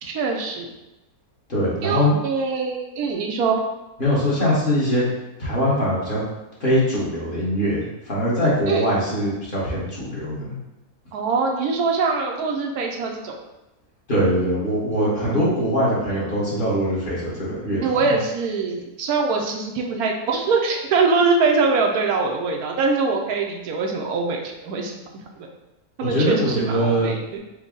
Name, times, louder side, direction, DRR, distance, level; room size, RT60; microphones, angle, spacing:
voice 1, 0.0-0.7 1.8-3.6 8.7-8.9 11.1-13.4 17.8-24.9 25.4-25.5 26.0-27.4, right 4 dB, 80° right, 1 dB, 1.1 m, -23 dB
voice 2, 1.5-2.2 4.0-5.0 5.4-6.2 6.6-10.5 14.1-18.0 26.0-27.1, equal, 35° left, -8 dB, 1.3 m, -22 dB
4.6 x 2.2 x 3.7 m, 0.98 s
omnidirectional pair, 1.6 m